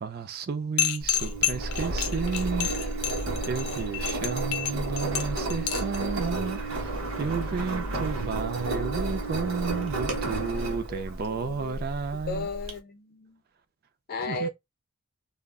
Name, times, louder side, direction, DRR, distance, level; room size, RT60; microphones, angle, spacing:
voice 1, 0.0-2.8 3.5-12.5 14.2-14.5, right 5 dB, 45° right, 0.4 m, -32 dB
sound 1, 0.8-6.0, left 12 dB, 90° left, 0.5 m, -29 dB
Engine, 1.0-12.7, right 2 dB, 65° right, 0.8 m, -32 dB
voice 2, 10.5-11.8 12.3-13.4 14.1-14.5, left 3 dB, 45° left, 0.6 m, -35 dB
2.3 x 2.1 x 3.5 m
head